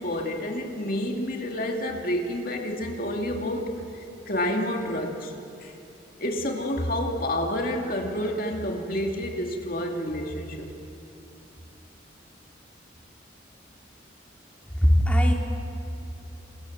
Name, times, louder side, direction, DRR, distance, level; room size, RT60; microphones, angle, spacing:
voice 1, 0.0-5.3 5.6-5.7 6.2-10.7, left 1 dB, 50° left, 1 dB, 2.5 m, -29 dB
voice 2, 14.8-15.3, equal, 10° left, 0 dB, 2.7 m, -19 dB
29.5 x 27.0 x 7.4 m, 2.7 s
head